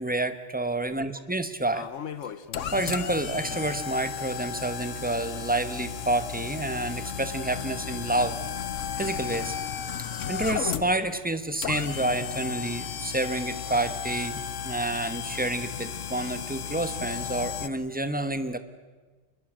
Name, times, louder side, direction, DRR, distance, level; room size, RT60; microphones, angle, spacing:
voice 1, 0.0-1.9 2.7-8.4 9.0-9.5 10.3-18.6, right 2 dB, 10° right, 10 dB, 1.2 m, -29 dB
sound 1, 1.7-17.7, left 8 dB, 80° left, 1.3 m, -34 dB
25.5 x 22.0 x 7.6 m, 1.3 s
omnidirectional pair, 1.3 m